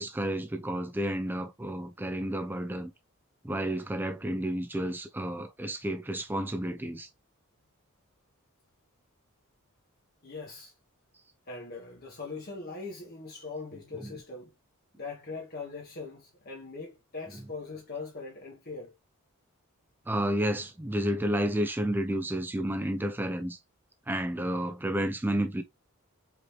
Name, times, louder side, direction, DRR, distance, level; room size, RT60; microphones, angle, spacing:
voice 1, 0.0-2.9 3.4-7.1 14.0-14.1 20.1-23.6 24.1-25.6, right 1 dB, 10° right, 0.4 m, -31 dB
voice 2, 10.2-10.7 11.5-14.5 15.0-18.9, left 3 dB, 45° left, 1.2 m, -41 dB
5.0 x 3.1 x 3.0 m
head